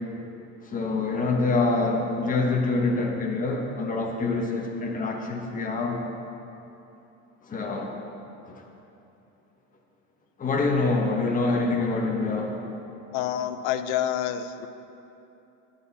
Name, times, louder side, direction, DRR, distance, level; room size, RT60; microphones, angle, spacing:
voice 1, 0.6-6.0 7.5-7.9 10.4-12.7, left 3 dB, 25° left, 1 dB, 1.4 m, -25 dB
voice 2, 13.1-14.7, left 10 dB, 90° left, 11 dB, 0.7 m, -28 dB
11.0 x 11.0 x 4.2 m, 2.9 s
cardioid pair, 140°, 31 cm